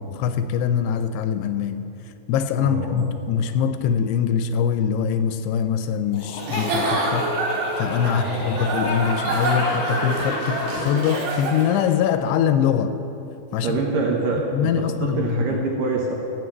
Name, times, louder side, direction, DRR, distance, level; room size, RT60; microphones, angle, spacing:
voice 1, 0.0-1.9 2.3-7.3 7.8-12.9 13.5-13.8 14.5-15.4, left 8 dB, 85° left, 10 dB, 2.6 m, -23 dB
voice 2, 2.6-3.1 8.0-8.3 13.5-16.1, right 3 dB, 70° right, 0 dB, 2.1 m, -26 dB
Laughter, 6.1-11.0, left 2 dB, 45° left, 1.7 m, -31 dB
Giggle / Chuckle chortle, 6.4-11.9, right 2 dB, 55° right, 3.0 m, -27 dB
15.5 x 5.7 x 7.9 m, 2.8 s
omnidirectional pair, 4.9 m